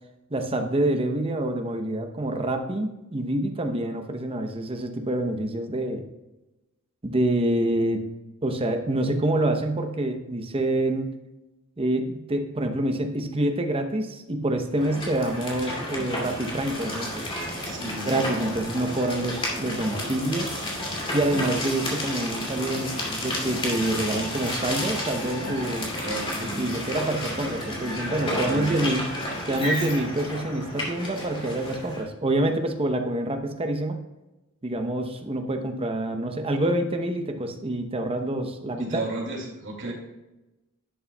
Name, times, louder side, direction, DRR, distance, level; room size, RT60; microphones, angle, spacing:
voice 1, 0.3-6.1 7.0-8.0 8.4-11.1 11.8-17.2 18.0-20.6 21.1-25.9 26.6-29.0 29.5-34.0 34.6-39.0, right 1 dB, 25° right, 5 dB, 0.8 m, -27 dB
sound 1, 14.7-32.0, left 1 dB, 25° left, 2.4 m, -31 dB
voice 2, 17.6-18.3 20.8-21.4 26.0-26.7 28.1-29.0 38.8-39.9, right 2 dB, 60° right, 0 dB, 2.2 m, -34 dB
11.0 x 8.6 x 2.3 m, 1.0 s
head